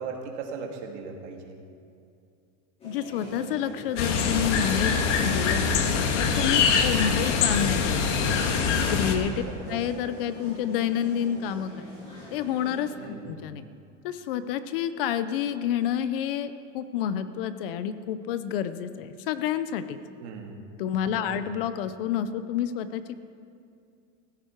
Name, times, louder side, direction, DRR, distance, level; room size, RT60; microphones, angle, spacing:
voice 1, 0.0-1.6 6.8-7.0 9.4-9.8 13.0-13.4 20.2-20.6 21.1-21.4, right 5 dB, 60° right, 2 dB, 2.4 m, -38 dB
voice 2, 2.8-8.4 8.9-9.3 9.7-11.7 12.3-13.6 14.0-20.0 20.8-23.2, left 9 dB, 45° left, 12 dB, 0.6 m, -29 dB
sound 1, 2.8-13.0, equal, 15° left, 3.9 m, -43 dB
sound 2, 4.0-9.1, left 5 dB, 65° left, 1.8 m, -24 dB
17.5 x 15.5 x 4.5 m, 2.4 s
supercardioid pair, 180°, 38 cm